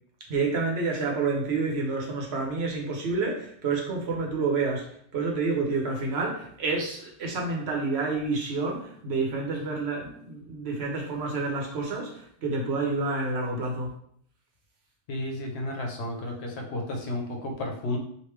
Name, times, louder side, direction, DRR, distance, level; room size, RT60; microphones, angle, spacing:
voice 1, 0.3-13.9, right 3 dB, 65° right, -1 dB, 1.0 m, -29 dB
voice 2, 15.1-18.0, left 1 dB, 70° left, 1 dB, 1.0 m, -32 dB
3.2 x 2.6 x 3.2 m, 0.66 s
omnidirectional pair, 1.2 m